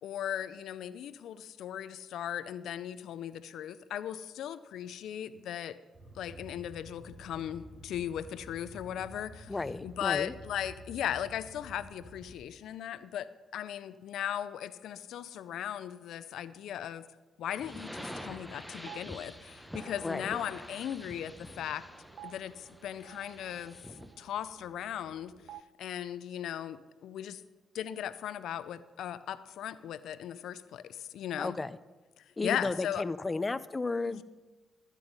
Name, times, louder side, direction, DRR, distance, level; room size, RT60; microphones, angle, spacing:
voice 1, 0.0-5.8 6.1-9.5 9.8-17.0 17.4-21.8 22.2-23.8 24.2-25.3 25.8-27.4 27.7-31.6 32.2-33.0 34.0-34.2, left 10 dB, 75° left, 14 dB, 0.5 m, -37 dB
sound 1, 5.9-12.3, right 1 dB, 50° right, 4.9 m, -51 dB
voice 2, 9.5-10.3 20.0-20.4 31.4-31.8 32.4-34.2, left 3 dB, 30° left, 16 dB, 0.6 m, -33 dB
sound 2, 17.5-24.2, equal, ahead, 1.0 m, -47 dB
sound 3, 17.9-25.6, right 11 dB, 70° right, 0.4 m, -55 dB
12.5 x 9.1 x 5.3 m, 1.2 s
hypercardioid pair, 50°, 0 cm